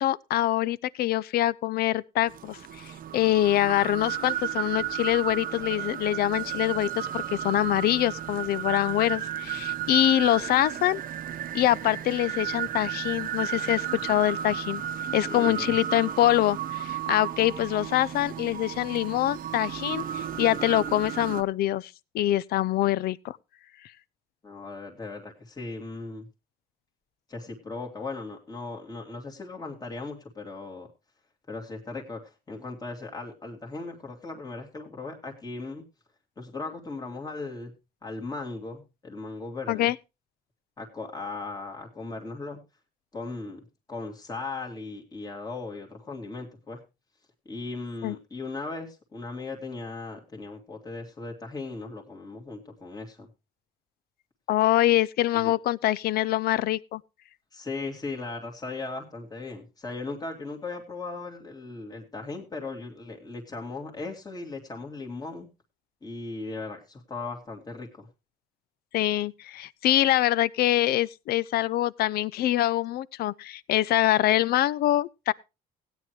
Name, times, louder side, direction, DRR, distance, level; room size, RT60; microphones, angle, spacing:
voice 1, 0.0-11.0 11.5-14.8 15.1-23.4 39.7-39.9 48.0-48.1 54.5-57.0 68.9-75.3, left 14 dB, 65° left, 0.5 m, -25 dB
sound 1, 2.3-21.4, right 10 dB, 55° right, 0.9 m, -33 dB
voice 2, 15.3-15.7 24.4-26.3 27.3-30.9 31.5-35.8 36.4-37.7 38.0-39.9 40.8-42.6 43.1-43.6 43.9-46.8 47.5-53.3 55.3-55.5 57.5-65.5 66.0-68.1, left 3 dB, 20° left, 2.4 m, -37 dB
16.5 x 9.3 x 3.1 m
cardioid pair, 110°, 17 cm